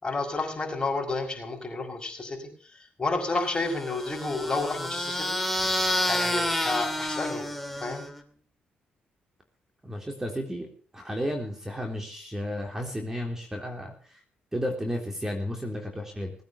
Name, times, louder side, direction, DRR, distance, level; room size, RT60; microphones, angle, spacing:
voice 1, 0.0-5.4 6.0-7.5 7.8-8.0, left 3 dB, 25° left, 2 dB, 5.9 m, -31 dB
sound 1, 3.7-8.2, left 1 dB, 5° left, 2.5 m, -29 dB
voice 2, 9.8-10.7 10.9-13.9 14.5-16.3, equal, 15° right, 3 dB, 3.5 m, -32 dB
19.5 x 9.1 x 7.1 m, 0.44 s
cardioid pair, 75°, 3 cm